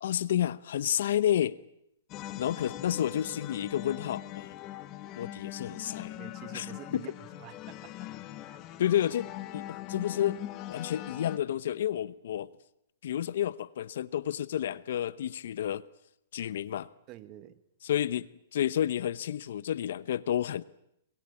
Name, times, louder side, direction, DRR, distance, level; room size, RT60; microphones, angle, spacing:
voice 1, 0.0-1.6 2.4-4.6 5.2-6.2 6.5-6.7 6.9-7.0 8.8-10.4 10.7-12.5 13.0-15.8 16.3-16.9 17.8-20.6, left 11 dB, 65° left, 1.0 m, -30 dB
sound 1, 2.1-11.4, left 13 dB, 30° left, 1.5 m, -41 dB
voice 2, 6.1-8.1 8.4-8.8 17.1-17.6, right 14 dB, 35° right, 1.6 m, -49 dB
28.0 x 21.5 x 8.7 m
hypercardioid pair, 145°, 0 cm